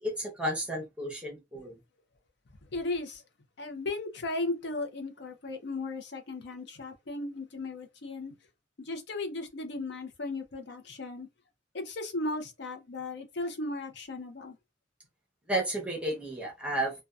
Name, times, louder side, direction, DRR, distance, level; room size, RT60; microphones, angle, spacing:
voice 1, 0.0-1.8 15.5-16.9, right 1 dB, 5° right, 0.8 m, -32 dB
voice 2, 2.7-3.2 3.6-8.3 8.8-11.3 11.7-14.6, left 2 dB, 65° left, 0.6 m, -36 dB
2.6 x 2.2 x 2.3 m
head